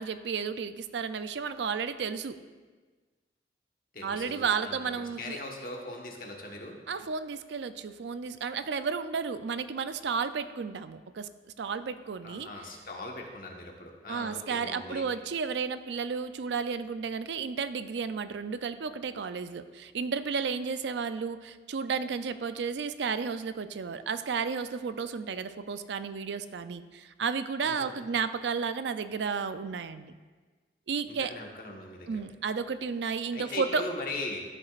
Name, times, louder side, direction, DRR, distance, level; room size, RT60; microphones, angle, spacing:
voice 1, 0.0-2.4 4.0-5.4 6.9-11.3 11.6-12.5 14.1-30.1 30.9-31.3 32.1-33.8, right 5 dB, 85° right, 12 dB, 0.4 m, -32 dB
voice 2, 3.9-6.8 12.2-15.1 27.6-28.0 31.1-32.2 33.3-34.4, left 2 dB, 50° left, 0 dB, 1.3 m, -40 dB
13.0 x 7.6 x 2.5 m, 1.4 s
head